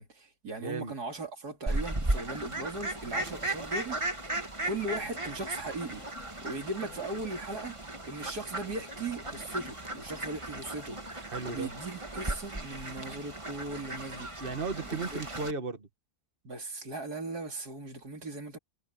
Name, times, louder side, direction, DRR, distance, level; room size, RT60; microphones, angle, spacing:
voice 1, 0.0-4.0 4.7-6.0 6.4-7.8 8.0-14.5 14.8-15.2 16.4-18.6, right 2 dB, 75° right, 3.8 m, -38 dB
voice 2, 0.6-0.9 11.3-11.7 14.4-15.9, right 4 dB, 35° right, 2.1 m, -35 dB
Fowl, 1.7-15.5, right 2 dB, 20° right, 2.1 m, -36 dB
sound 1, 3.0-10.5, left 4 dB, 50° left, 2.8 m, -53 dB
omnidirectional pair, 1.7 m